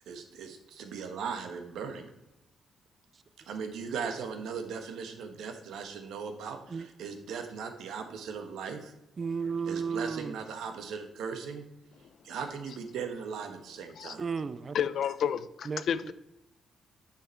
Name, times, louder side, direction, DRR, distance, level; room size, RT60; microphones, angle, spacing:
voice 1, 0.1-2.1 3.5-8.9 9.7-11.6 12.2-14.2, right 6 dB, 90° right, 1.3 m, -38 dB
voice 2, 9.2-10.3 14.2-14.8 15.7-15.8, right 5 dB, 35° right, 0.4 m, -33 dB
voice 3, 14.7-16.1, left 8 dB, 65° left, 0.5 m, -30 dB
9.6 x 5.7 x 4.5 m
cardioid pair, 110°, 0 cm